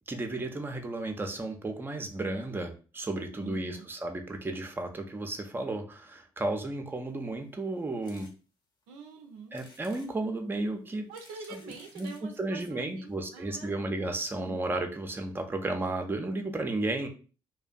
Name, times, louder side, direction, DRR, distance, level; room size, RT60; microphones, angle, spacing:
voice 1, 0.1-8.3 9.5-11.1 11.5-11.6 12.0-12.1 12.4-17.1, right 2 dB, 15° right, 4 dB, 0.5 m, -33 dB
voice 2, 3.4-3.8 8.9-9.6 11.1-13.8 14.3-14.6, right 5 dB, 75° right, 4 dB, 0.4 m, -45 dB
sound 1, 8.0-8.3 8.8-8.9 9.5-10.1 10.9-12.3 13.1-13.2 13.4-13.5 13.7-13.8, left 2 dB, 35° left, 0.8 m, -56 dB
2.5 x 2.2 x 2.4 m, 0.36 s
hypercardioid pair, 45°, 13 cm